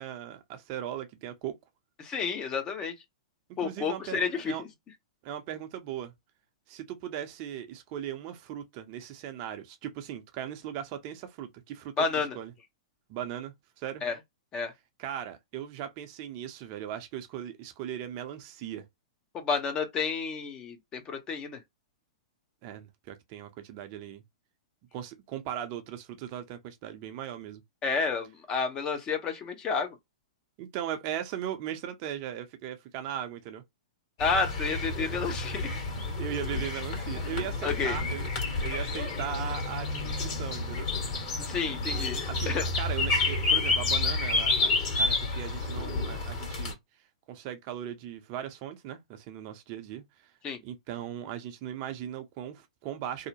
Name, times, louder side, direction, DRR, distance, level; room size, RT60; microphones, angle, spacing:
voice 1, 0.0-1.5 3.6-4.6 5.2-6.1 6.7-12.0 12.4-12.5 13.1-14.0 15.0-18.9 22.6-24.2 24.9-27.6 30.6-33.6 36.2-38.3 38.6-40.9 42.3-46.8 47.3-50.3 50.6-53.3, right 10 dB, 40° right, 0.6 m, -38 dB
voice 2, 2.0-2.9 3.6-4.7 12.0-12.4 14.0-14.1 14.5-14.7 19.3-21.6 27.8-30.0 34.2-35.8 37.6-38.0 41.4-42.6 50.4-50.6, left 5 dB, 25° left, 0.7 m, -30 dB
sound 1, 34.2-46.7, left 3 dB, 45° left, 1.4 m, -30 dB
2.7 x 2.0 x 2.8 m
hypercardioid pair, 120°, 3 cm